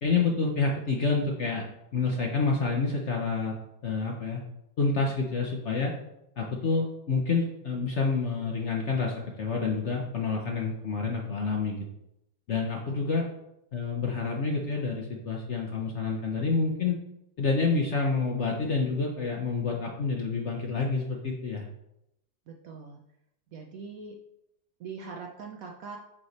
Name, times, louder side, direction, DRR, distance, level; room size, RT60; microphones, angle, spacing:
voice 1, 0.0-1.6 1.9-3.5 3.8-4.4 4.8-5.9 6.4-11.8 12.5-13.3 13.7-16.9 17.4-21.7, left 4 dB, 55° left, 0 dB, 0.8 m, -28 dB
voice 2, 22.5-23.0 23.5-24.2 24.8-26.0, right 5 dB, 65° right, 1 dB, 0.9 m, -42 dB
8.7 x 3.2 x 4.1 m, 0.83 s
omnidirectional pair, 2.0 m